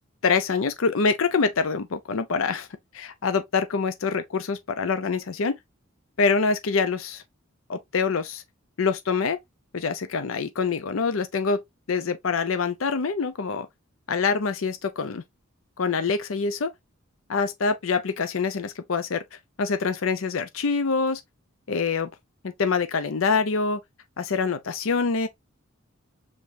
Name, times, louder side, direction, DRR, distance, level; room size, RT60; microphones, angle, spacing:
voice 1, 0.2-2.7 2.9-5.6 6.2-7.2 7.7-8.4 8.8-9.4 9.7-11.6 11.9-13.7 14.1-15.2 15.8-16.7 17.3-19.2 19.6-21.2 21.7-22.1 22.4-23.8 24.2-25.3, left 5 dB, 75° left, 0.6 m, -25 dB
5.2 x 3.4 x 2.6 m
head